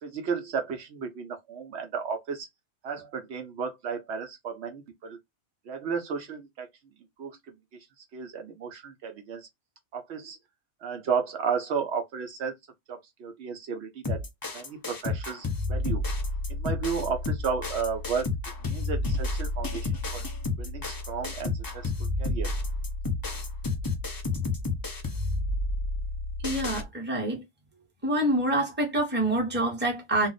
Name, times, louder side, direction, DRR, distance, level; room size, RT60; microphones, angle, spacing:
voice 1, 0.0-2.5 2.8-5.2 5.7-6.7 7.2-7.4 8.1-9.5 9.9-10.4 10.8-12.5 12.9-14.2 14.5-16.0 16.5-18.3 18.6-20.3 20.6-22.5, right 6 dB, 75° right, 0.9 m, -33 dB
sound 1, 14.0-26.8, left 2 dB, 30° left, 0.4 m, -31 dB
voice 2, 26.4-27.4 28.0-30.3, right 1 dB, 10° right, 0.9 m, -26 dB
2.4 x 2.0 x 3.9 m
omnidirectional pair, 1.2 m